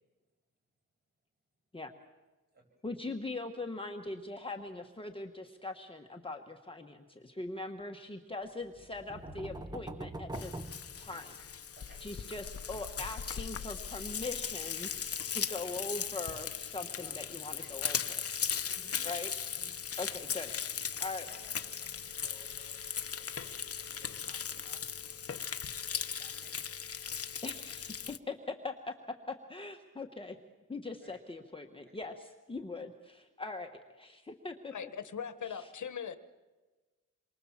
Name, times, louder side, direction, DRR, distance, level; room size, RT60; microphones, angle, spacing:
voice 1, 2.8-10.6 11.0-11.3 12.0-14.9 15.3-18.2 19.0-19.3 20.0-20.6 21.0-21.3 27.4-27.9 28.3-28.7 29.3-30.4 30.7-34.7 35.4-35.7, left 3 dB, 15° left, 3 dB, 1.3 m, -41 dB
sound 1, 8.7-11.7, right 1 dB, 10° right, 1.1 m, -43 dB
Frying (food), 10.3-28.2, left 7 dB, 45° left, 1.0 m, -38 dB
voice 2, 11.8-12.1 17.0-17.2 17.6-17.7 18.4-19.1 19.5-19.8 20.1-20.3 21.2-25.2 25.8-26.7 31.0-31.2, right 1 dB, 30° right, 1 dB, 7.5 m, -59 dB
voice 3, 34.7-36.2, left 7 dB, 60° left, 11 dB, 1.3 m, -40 dB
28.0 x 24.0 x 7.3 m, 1.2 s
wide cardioid pair, 150°, 34 cm